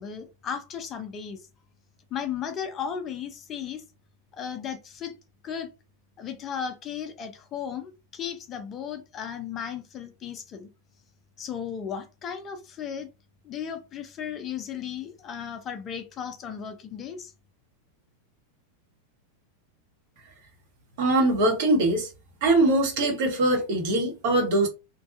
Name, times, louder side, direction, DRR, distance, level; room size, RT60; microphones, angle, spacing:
voice 1, 0.0-1.4 2.1-3.8 4.3-5.1 5.4-5.7 6.2-10.7 11.4-13.1 13.4-17.3, left 8 dB, 30° left, 0.4 m, -35 dB
voice 2, 21.0-22.1 22.4-24.7, right 2 dB, 50° right, 0.9 m, -22 dB
2.6 x 2.2 x 2.5 m
figure-of-eight pair, 90°, 0 cm